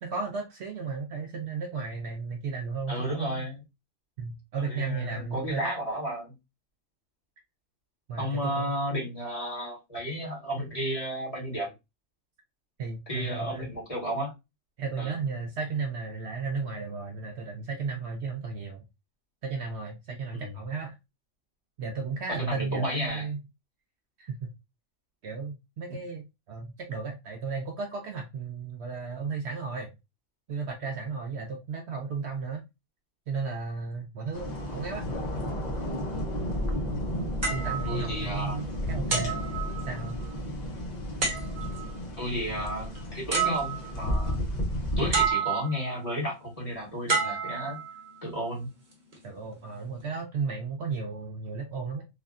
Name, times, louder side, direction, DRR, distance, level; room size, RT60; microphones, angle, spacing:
voice 1, 0.0-3.5 4.2-5.7 8.1-8.8 12.8-13.7 14.8-18.8 19.4-21.0 21.8-23.4 24.2-24.5 25.2-29.9 30.5-32.6 33.3-35.0 37.5-39.4 39.9-40.2 45.0-45.1 49.2-52.1, right 4 dB, 65° right, 0.8 m, -34 dB
voice 2, 2.9-3.6 4.7-6.3 8.2-11.7 13.1-14.3 15.0-15.1 20.3-20.5 22.3-23.3 37.8-38.7 42.2-44.4 45.0-47.8 48.2-48.7, equal, 30° left, 1.4 m, -32 dB
sound 1, 34.3-45.3, equal, 45° left, 0.6 m, -33 dB
sound 2, 37.4-38.6 39.1-40.3 41.2-41.9 42.9-43.0 43.3-44.1 45.1-45.9 47.1-48.2 48.9-49.2, right 5 dB, 45° right, 1.1 m, -30 dB
3.3 x 2.2 x 2.4 m
omnidirectional pair, 1.4 m